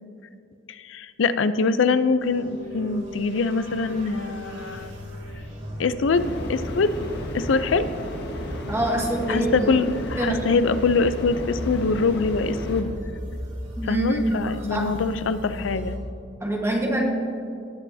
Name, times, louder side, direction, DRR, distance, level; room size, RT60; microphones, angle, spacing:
voice 1, 0.7-4.9 5.8-6.9 7.3-7.9 9.3-12.9 13.8-16.0, left 4 dB, 80° left, 12 dB, 0.5 m, -23 dB
sound 1, 2.2-16.0, equal, 85° right, 2.1 m, -38 dB
sound 2, 6.1-12.8, equal, 60° left, 1.3 m, -34 dB
voice 2, 8.7-9.7 10.2-10.4 13.8-14.9 16.4-17.0, right 1 dB, 15° right, -1 dB, 1.4 m, -25 dB
18.5 x 7.7 x 2.7 m, 2.5 s
head